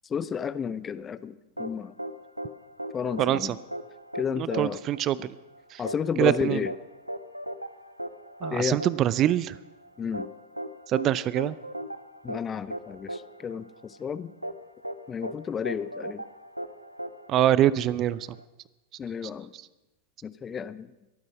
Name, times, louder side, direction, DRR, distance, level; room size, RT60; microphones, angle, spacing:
voice 1, 0.1-1.9 2.9-3.6 4.1-4.8 5.8-6.7 8.5-8.8 10.0-10.3 12.2-14.3 15.1-16.2 19.0-19.5 20.2-20.9, left 7 dB, 20° left, 16 dB, 0.6 m, -32 dB
sound 1, 1.6-18.4, right 1 dB, 85° right, 0.8 m, -38 dB
voice 2, 3.2-3.6 4.4-5.2 5.7-5.8 6.2-6.6 8.4-9.6 10.9-11.5 17.3-18.3, right 12 dB, 35° right, 20 dB, 0.5 m, -24 dB
23.0 x 9.6 x 6.2 m, 1.0 s
figure-of-eight pair, 90°, 0 cm